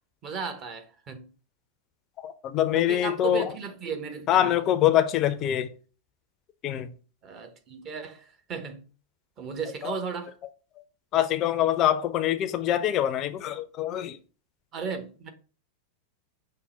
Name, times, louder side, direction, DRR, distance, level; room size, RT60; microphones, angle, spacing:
voice 1, 0.2-1.3 2.7-4.6 7.2-8.8 9.4-10.3 14.7-15.3, right 6 dB, 30° right, 0.8 m, -35 dB
voice 2, 2.2-3.5 4.3-5.7 6.6-6.9 9.8-9.9 11.1-14.2, left 11 dB, 35° left, 0.4 m, -24 dB
5.6 x 2.1 x 4.2 m
figure-of-eight pair, 90°, 0 cm